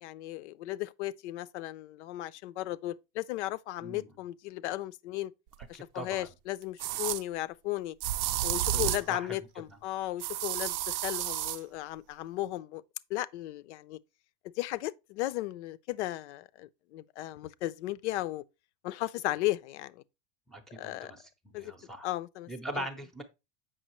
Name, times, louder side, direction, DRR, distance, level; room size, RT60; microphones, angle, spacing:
voice 1, 0.0-5.3 5.7-7.9 8.4-12.8 13.1-14.0 14.4-18.4 18.8-20.0 20.7-21.1 21.5-21.7 22.0-22.5 22.8-22.9, left 16 dB, 90° left, 0.6 m, -35 dB
voice 2, 3.8-4.1 5.7-6.3 8.7-9.4 9.7-9.8 20.5-22.1 22.5-23.2, right 1 dB, ahead, 0.5 m, -41 dB
sound 1, 5.6-5.7 6.8-7.2 8.0-9.1 10.2-11.6, right 13 dB, 55° right, 0.5 m, -31 dB
7.7 x 6.0 x 3.0 m
supercardioid pair, 170°, 33 cm